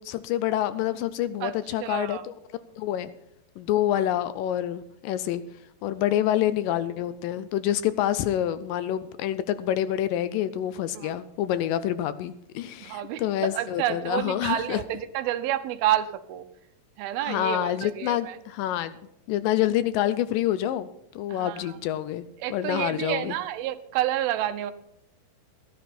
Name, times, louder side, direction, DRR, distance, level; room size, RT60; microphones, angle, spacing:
voice 1, 0.0-2.3 2.8-3.1 3.6-5.4 5.8-14.8 17.2-19.0 19.3-20.9 21.2-22.2 22.5-23.4, left 12 dB, 80° left, 14 dB, 2.1 m, -27 dB
voice 2, 1.8-2.2 10.9-11.1 12.8-13.2 13.5-16.4 17.0-18.4 21.3-21.8 22.4-24.7, right 12 dB, 90° right, 11 dB, 2.7 m, -29 dB
14.0 x 11.0 x 4.3 m, 0.81 s
omnidirectional pair, 4.2 m